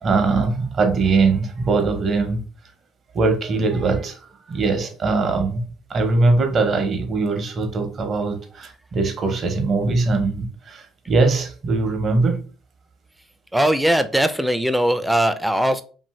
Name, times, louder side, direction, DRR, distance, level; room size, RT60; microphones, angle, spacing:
voice 1, 0.0-2.4 3.1-4.2 4.5-5.6 5.9-12.4, right 3 dB, 45° right, 0.7 m, -21 dB
voice 2, 13.5-15.8, right 1 dB, 5° right, 0.4 m, -19 dB
2.7 x 2.6 x 3.0 m
supercardioid pair, 95°, 0 cm